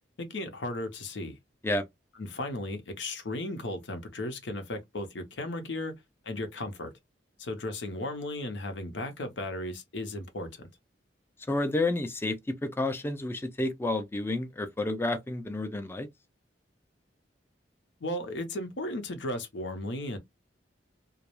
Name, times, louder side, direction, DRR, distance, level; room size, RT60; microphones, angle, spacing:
voice 1, 0.2-1.4 2.2-5.9 6.2-6.9 7.4-10.7 18.0-20.2, left 1 dB, 80° left, 0.7 m, -35 dB
voice 2, 11.5-16.1, left 2 dB, 15° left, 0.3 m, -30 dB
2.3 x 2.0 x 2.9 m
head